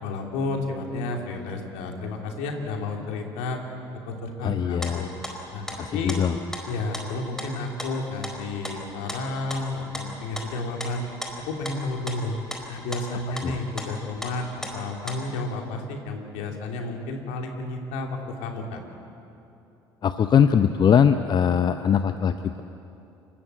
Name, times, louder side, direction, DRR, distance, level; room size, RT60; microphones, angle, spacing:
voice 1, 0.0-3.6 4.1-5.1 5.5-5.6 5.9-6.2 6.7-11.1 11.4-12.4 12.7-18.8, left 2 dB, 60° left, 2 dB, 2.9 m, -31 dB
voice 2, 4.4-5.1 5.7-6.4 13.4-13.6 20.0-22.6, left 8 dB, 35° left, 10 dB, 0.7 m, -21 dB
sound 1, 4.6-4.9 5.2-5.8 6.1-6.7 6.9-7.5 7.8-12.7 12.9-13.1 13.4-13.5 13.8-15.4, equal, 5° left, 4.3 m, -36 dB
29.0 x 14.0 x 8.3 m, 2.9 s
figure-of-eight pair, 55°, 13 cm